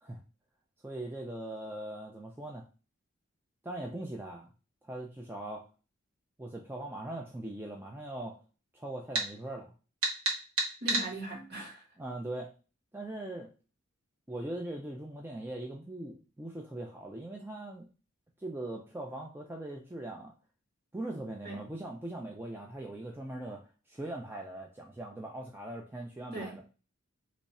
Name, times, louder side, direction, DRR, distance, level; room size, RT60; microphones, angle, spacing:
voice 1, 0.8-2.6 3.6-4.5 4.8-5.6 6.4-8.4 8.7-9.7 12.0-12.5 12.9-13.5 14.3-17.9 18.4-20.3 20.9-23.6 23.9-26.6, right 1 dB, 10° right, 0.3 m, -40 dB
sound 1, 9.1-9.3 10.0-11.1, right 2 dB, 85° right, 1.1 m, -29 dB
voice 2, 10.8-11.8 21.4-21.6 26.3-26.7, right 1 dB, 50° right, 1.6 m, -39 dB
3.0 x 2.3 x 4.1 m
head